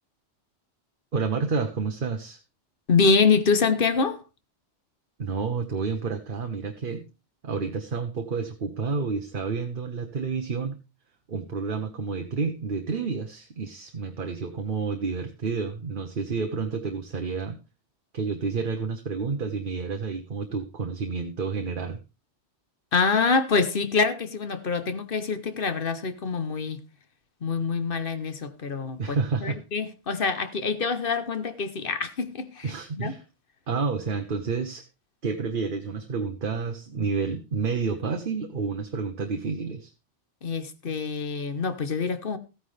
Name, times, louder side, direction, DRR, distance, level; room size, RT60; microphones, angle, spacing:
voice 1, 1.1-2.4 5.2-7.0 7.4-10.8 11.3-17.6 18.1-22.0 29.0-29.6 32.6-33.2 33.7-34.8 35.2-39.9, right 5 dB, 50° right, 1.1 m, -29 dB
voice 2, 2.9-4.2 22.9-26.8 27.4-29.2 29.4-32.7 33.0-33.1 40.4-42.4, left 4 dB, 50° left, 1.1 m, -25 dB
14.5 x 9.3 x 3.3 m
omnidirectional pair, 1.2 m